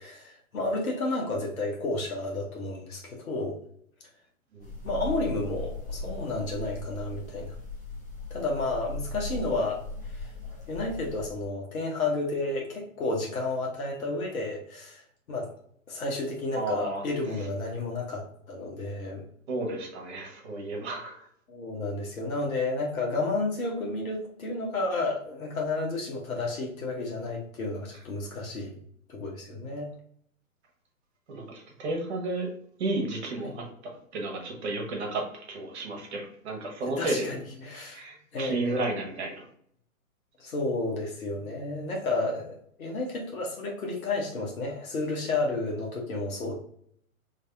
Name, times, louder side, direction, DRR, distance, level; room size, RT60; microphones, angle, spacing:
voice 1, 0.0-3.6 4.8-7.5 8.3-9.8 10.1-10.3 10.7-15.0 15.3-15.5 15.9-19.2 21.5-28.8 29.1-29.9 33.4-33.5 36.8-38.0 38.3-38.8 40.4-46.5, left 2 dB, 75° left, -1 dB, 1.3 m, -31 dB
sound 1, 4.6-11.3, left 2 dB, 15° left, 0.4 m, -38 dB
voice 2, 16.5-17.0 17.4-17.5 19.5-21.3 31.3-32.5 32.8-33.6 34.1-37.3 37.9-39.5, right 2 dB, 50° right, 1 dB, 1.3 m, -32 dB
3.2 x 2.8 x 3.4 m, 0.64 s
hypercardioid pair, 130°, 42 cm